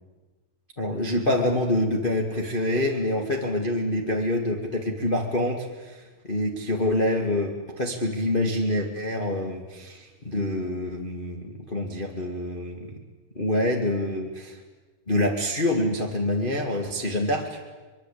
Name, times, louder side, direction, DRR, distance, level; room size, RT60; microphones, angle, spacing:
voice 1, 0.8-12.9 13.3-14.6 15.1-17.6, left 1 dB, 20° left, 1 dB, 1.4 m, -26 dB
24.5 x 22.5 x 8.6 m, 1.3 s
omnidirectional pair, 4.5 m